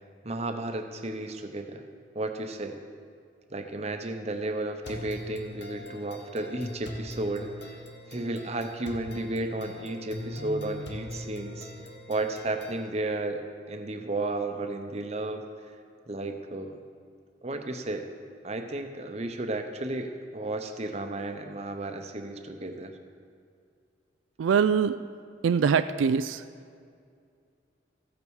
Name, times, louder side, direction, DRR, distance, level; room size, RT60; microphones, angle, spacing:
voice 1, 0.2-1.8 2.1-2.8 3.5-7.8 8.1-11.7 12.1-15.4 16.1-16.8 17.4-18.1 18.4-22.9, right 2 dB, 35° right, 5 dB, 0.8 m, -33 dB
sound 1, 4.8-12.8, left 1 dB, 60° left, 1.3 m, -41 dB
voice 2, 24.4-25.0 25.4-26.4, right 6 dB, 90° right, 11 dB, 0.3 m, -23 dB
14.0 x 8.6 x 4.7 m, 2.3 s
head